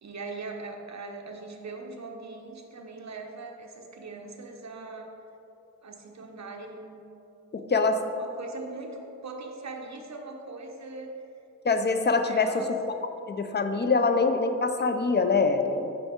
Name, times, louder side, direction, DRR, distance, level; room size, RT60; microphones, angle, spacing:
voice 1, 0.0-5.1 5.8-7.0 8.1-11.2 12.3-12.7, right 3 dB, 60° right, 2 dB, 0.8 m, -40 dB
voice 2, 7.5-8.0 11.6-13.0 13.3-15.9, left 4 dB, 35° left, 7 dB, 0.5 m, -24 dB
5.6 x 5.6 x 4.4 m, 2.8 s
wide cardioid pair, 90°, 31 cm